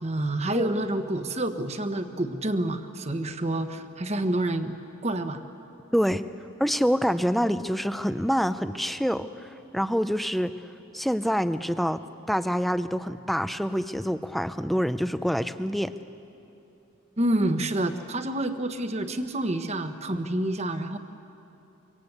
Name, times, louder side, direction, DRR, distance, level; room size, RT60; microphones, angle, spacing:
voice 1, 0.0-4.7 5.0-5.4 17.2-21.0, right 1 dB, 30° right, 8 dB, 1.1 m, -28 dB
voice 2, 5.9-6.2 6.6-10.5 10.9-12.0 12.3-15.9, equal, ahead, 11 dB, 0.5 m, -26 dB
25.0 x 24.5 x 8.1 m, 2.8 s
head